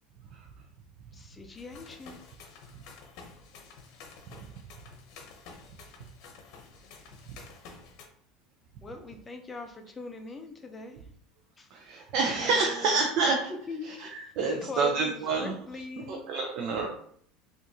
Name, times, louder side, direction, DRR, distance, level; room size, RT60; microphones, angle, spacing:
voice 1, 1.1-2.4 8.8-11.1 11.6-12.1 12.4-14.3 14.6-16.3, left 3 dB, 15° left, 5 dB, 0.5 m, -41 dB
sound 1, 1.6-8.1, left 4 dB, 60° left, 0.8 m, -50 dB
voice 2, 11.7-13.5 14.0-14.1 14.4-15.5 16.1-16.9, right 4 dB, 55° right, 1 dB, 0.5 m, -28 dB
4.5 x 2.5 x 2.7 m, 0.62 s
supercardioid pair, 130°, 0 cm